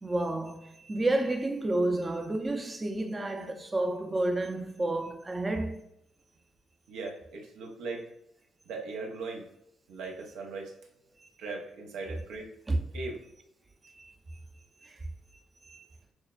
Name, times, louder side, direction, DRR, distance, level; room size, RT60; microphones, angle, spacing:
voice 1, 0.0-5.8 11.2-11.3 12.7-12.8 13.0-13.1 13.8-14.4 14.8-15.0 15.6-15.8, right 2 dB, 25° right, 0.5 m, -31 dB
voice 2, 6.9-8.0 8.7-9.4 9.9-10.7 11.4-12.5 12.9-13.2, right 3 dB, 90° right, 0.8 m, -38 dB
6.2 x 2.2 x 2.4 m
cardioid pair, 90°, 0 cm